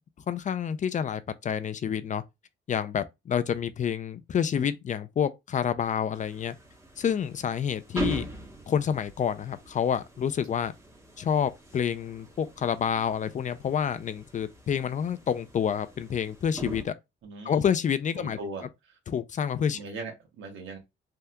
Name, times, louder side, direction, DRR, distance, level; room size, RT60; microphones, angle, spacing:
voice 1, 0.3-2.2 2.7-6.5 7.0-8.3 8.7-10.7 11.2-16.9 17.4-18.4 19.1-19.8, left 8 dB, 40° left, 0.4 m, -28 dB
sound 1, 6.1-16.8, right 1 dB, 15° right, 1.1 m, -41 dB
voice 2, 17.2-17.6 18.2-19.0 19.7-20.8, right 3 dB, 75° right, 1.4 m, -40 dB
3.4 x 2.7 x 2.2 m
cardioid pair, 90°, 20 cm